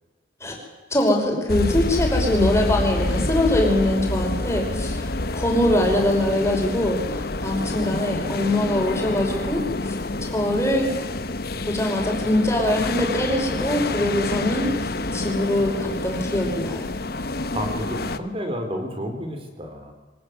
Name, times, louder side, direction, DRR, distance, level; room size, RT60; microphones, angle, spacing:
voice 1, 0.9-10.0 10.2-10.9 11.7-16.9, left 1 dB, 15° left, 0 dB, 5.5 m, -23 dB
sound 1, 1.5-18.2, left 2 dB, 50° left, 1.0 m, -27 dB
voice 2, 17.3-19.9, equal, 30° right, 5 dB, 4.0 m, -31 dB
24.5 x 19.0 x 8.1 m, 1.3 s
head